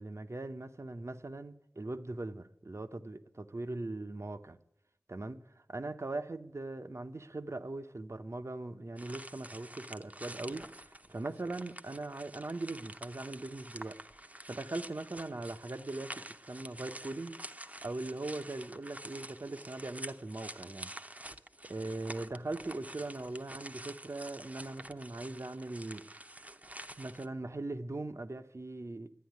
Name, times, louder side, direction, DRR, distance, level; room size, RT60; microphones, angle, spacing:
voice 1, 0.0-4.6 5.1-5.4 5.7-14.0 14.5-17.4 17.8-20.9 21.6-26.0 27.0-29.1, right 2 dB, 60° right, 0.8 m, -40 dB
sound 1, 9.0-27.3, right 1 dB, 25° right, 0.8 m, -48 dB
11.5 x 9.7 x 9.4 m
wide cardioid pair, 50°, 5 cm